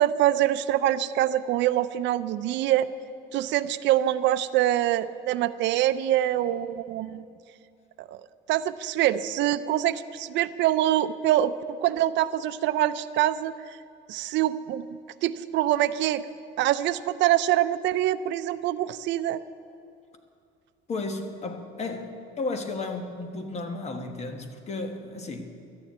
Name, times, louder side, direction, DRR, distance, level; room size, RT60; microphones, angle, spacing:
voice 1, 0.0-2.9 3.3-7.2 8.0-8.2 8.5-11.5 11.8-13.8 14.1-14.9 15.2-16.2 16.6-19.4, right 13 dB, 70° right, 14 dB, 0.5 m, -24 dB
voice 2, 20.9-25.5, left 3 dB, 35° left, 6 dB, 1.4 m, -33 dB
13.0 x 7.1 x 9.3 m, 2.5 s
cardioid pair, 120°, 20 cm